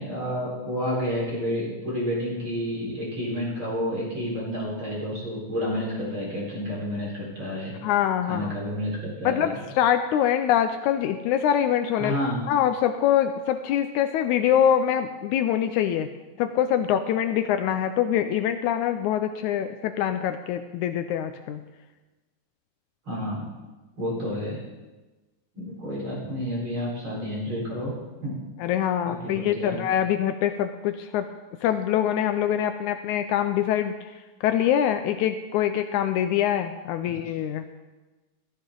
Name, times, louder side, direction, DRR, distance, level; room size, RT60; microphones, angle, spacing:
voice 1, 0.0-7.7 8.2-9.6 12.0-12.4 23.1-23.4 24.0-24.6 25.5-27.9 28.2-28.4 29.0-29.8 37.0-37.2, equal, 40° right, -5 dB, 5.2 m, -30 dB
voice 2, 7.8-8.6 9.3-12.2 12.5-16.1 16.4-21.6 28.6-31.3 31.6-33.9 34.4-37.7, left 10 dB, 80° left, 8 dB, 1.9 m, -24 dB
14.0 x 14.0 x 3.8 m, 1.2 s
omnidirectional pair, 3.7 m